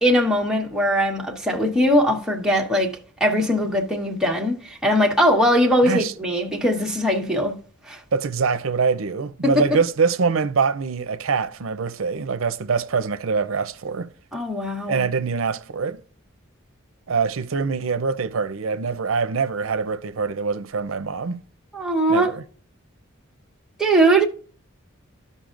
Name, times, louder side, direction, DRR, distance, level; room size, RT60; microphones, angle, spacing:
voice 1, 0.0-7.5 7.9-8.0 9.4-9.6 14.3-15.0 21.7-22.3 23.8-24.3, equal, 5° right, 1.2 m, -20 dB
voice 2, 8.1-14.1 14.9-16.0 17.1-21.4 22.1-22.4, right 5 dB, 75° right, 0.5 m, -24 dB
14.0 x 5.5 x 2.5 m
head